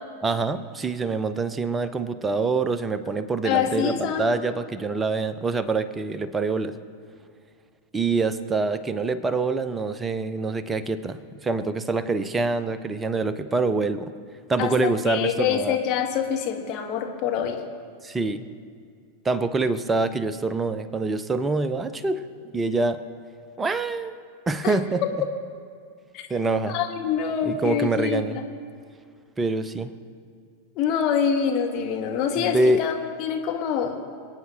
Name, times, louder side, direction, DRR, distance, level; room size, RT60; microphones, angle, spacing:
voice 1, 0.2-6.7 7.9-14.1 14.5-15.8 18.0-18.4 19.2-22.2 22.5-23.0 23.6-24.2 24.5-25.0 26.3-26.8 27.4-28.4 29.4-29.9 32.4-32.9, right 3 dB, 15° right, 13 dB, 0.7 m, -25 dB
voice 2, 3.4-4.3 14.6-17.6 24.6-24.7 26.1-26.3 26.7-28.5 30.7-34.0, left 8 dB, 35° left, 2 dB, 1.4 m, -25 dB
28.0 x 9.3 x 2.9 m, 2.2 s
figure-of-eight pair, 90°, 0 cm